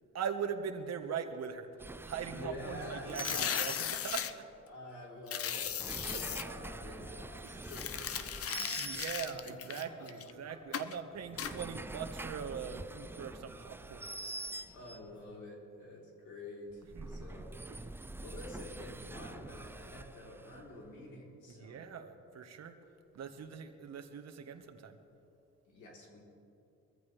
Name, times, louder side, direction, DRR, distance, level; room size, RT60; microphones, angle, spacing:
voice 1, 0.1-1.7 2.0-4.5 6.1-6.2 7.4-7.6 8.8-14.4 16.9-17.2 17.7-17.8 21.5-22.8 23.1-25.0, right 7 dB, 60° right, 7 dB, 1.3 m, -41 dB
sound 1, 1.8-4.3 5.6-9.6 11.1-15.2 16.7-20.9, right 2 dB, 10° right, 0.4 m, -45 dB
voice 2, 2.3-3.9 4.7-8.9 9.3-10.8 14.3-17.5 18.2-21.9 25.7-26.2, left 1 dB, 80° left, -2 dB, 3.5 m, -48 dB
sound 2, 3.1-4.3 5.3-6.4 7.6-10.3 10.7-11.0 11.4-11.5, left 9 dB, 50° left, 0.7 m, -37 dB
22.0 x 14.5 x 3.3 m, 2.7 s
cardioid pair, 90°, 30 cm